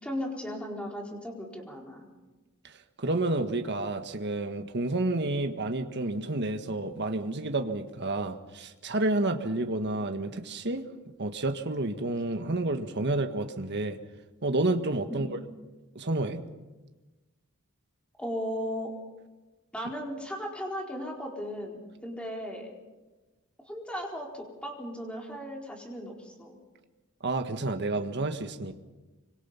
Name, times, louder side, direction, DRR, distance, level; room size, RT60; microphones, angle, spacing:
voice 1, 0.0-2.1 15.1-15.2 18.2-18.9 19.7-22.7 23.6-26.6, equal, 5° left, 0 dB, 4.4 m, -36 dB
voice 2, 2.6-10.9 11.2-14.0 14.4-15.3 15.9-16.4 27.2-28.7, right 2 dB, 55° right, 7 dB, 1.6 m, -30 dB
26.0 x 25.0 x 5.8 m, 1.2 s
head